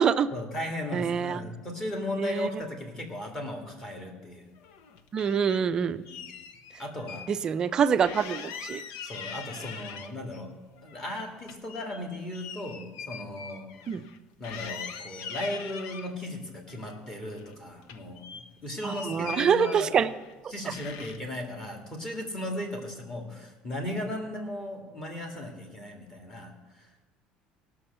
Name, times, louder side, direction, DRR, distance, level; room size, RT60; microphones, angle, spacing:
voice 1, 0.3-4.4 6.1-6.2 6.8-7.3 9.0-10.6 10.8-13.7 14.4-19.9 20.5-27.1, left 1 dB, 20° left, 2 dB, 1.9 m, -36 dB
voice 2, 0.9-1.4 2.2-2.5 5.1-6.0 7.3-8.8 13.9-14.0 18.8-20.1 20.4-20.7, right 7 dB, 25° right, 11 dB, 0.4 m, -25 dB
sound 1, 4.6-5.6 6.1-7.3 7.6-7.7 8.0-10.4 10.8-14.2 14.4-16.1 16.7-17.6 17.8-20.3 20.7-21.4, left 7 dB, 85° left, 0.8 m, -42 dB
17.5 x 6.2 x 6.7 m, 1.2 s
cardioid pair, 170°, 3 cm